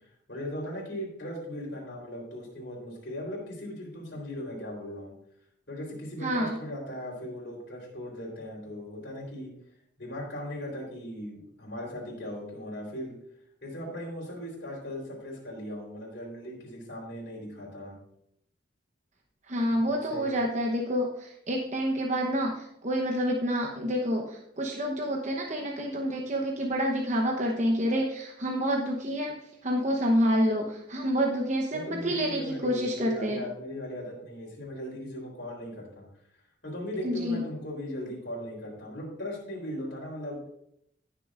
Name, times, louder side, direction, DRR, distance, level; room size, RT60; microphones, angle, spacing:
voice 1, 0.3-5.1 5.7-9.5 10.0-13.2 13.6-17.9 19.7-20.4 31.7-36.0 36.6-40.4, equal, 60° left, -2 dB, 3.8 m, -38 dB
voice 2, 6.2-6.6 19.5-29.3 29.6-33.4 37.0-37.4, equal, 40° right, 0 dB, 0.9 m, -28 dB
17.5 x 6.8 x 2.5 m, 0.73 s
head